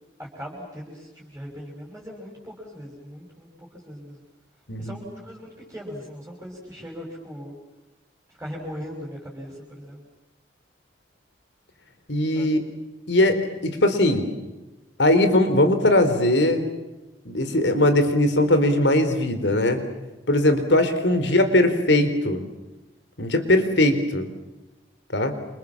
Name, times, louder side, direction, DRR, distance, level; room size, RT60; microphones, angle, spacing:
voice 1, 0.2-4.2 4.8-7.6 8.3-10.0 12.3-12.6 21.1-21.2, equal, 10° right, -2 dB, 6.3 m, -39 dB
voice 2, 12.1-12.6 13.1-14.3 15.0-16.6 17.3-19.8 20.3-22.5 23.2-24.3 25.1-25.3, left 1 dB, 75° left, 9 dB, 4.0 m, -20 dB
28.5 x 28.0 x 7.4 m, 1.0 s
head